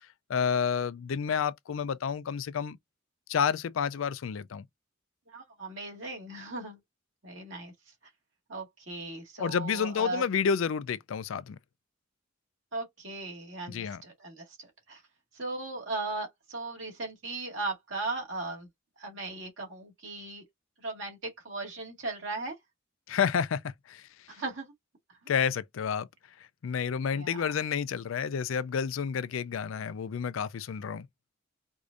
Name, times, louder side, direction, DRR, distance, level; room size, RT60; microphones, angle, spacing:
voice 1, 0.3-2.8 3.3-4.6 9.4-11.6 13.7-14.0 23.1-24.1 25.3-26.1 26.6-31.1, left 7 dB, 85° left, 0.4 m, -30 dB
voice 2, 5.3-6.8 7.2-7.7 8.5-10.2 12.7-15.0 15.4-18.7 19.0-20.4 20.8-22.6 24.3-24.7 27.1-27.5, right 3 dB, 70° right, 2.0 m, -37 dB
4.8 x 2.6 x 2.5 m
head